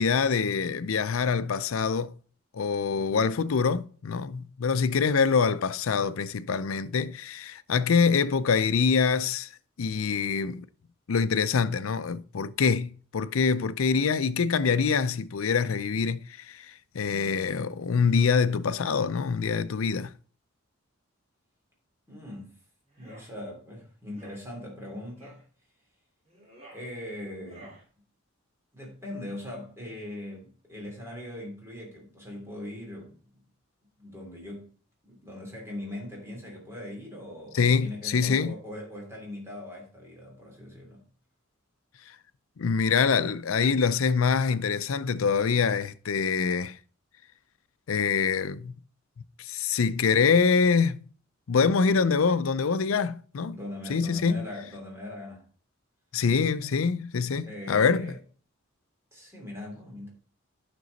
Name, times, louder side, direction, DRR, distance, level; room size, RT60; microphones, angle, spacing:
voice 1, 0.0-2.2 2.5-9.5 9.8-10.7 11.1-20.1 37.5-38.5 42.6-46.8 47.9-48.7 49.4-51.0 51.5-53.6 53.9-54.4 56.1-58.1, left 5 dB, 85° left, 0.5 m, -25 dB
voice 2, 22.1-22.5 23.0-25.4 26.7-27.8 28.7-33.2 34.0-34.7 35.1-41.0 53.5-55.4 57.5-58.1 59.1-60.1, left 1 dB, 15° right, 3.0 m, -40 dB
sound 1, 22.9-23.3 24.1-24.4 25.2-25.4 26.2-26.9 27.4-27.8, right 1 dB, 30° right, 2.7 m, -51 dB
9.3 x 6.0 x 4.0 m
head